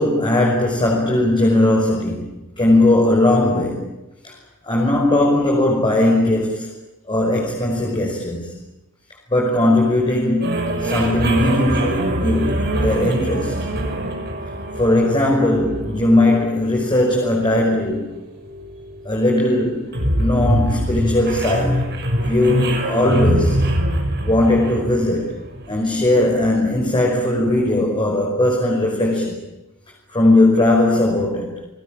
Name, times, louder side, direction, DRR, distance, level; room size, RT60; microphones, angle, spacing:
voice 1, 0.0-3.9 4.2-4.4 4.6-6.7 7.1-8.5 9.3-13.7 14.8-18.2 19.1-21.9 22.2-23.6 24.2-25.4 25.7-29.3 30.1-31.6, left 1 dB, 20° left, -1 dB, 5.3 m, -18 dB
sound 1, 10.4-25.8, right 1 dB, 50° right, 6.1 m, -24 dB
30.0 x 20.5 x 9.0 m, 1.0 s
head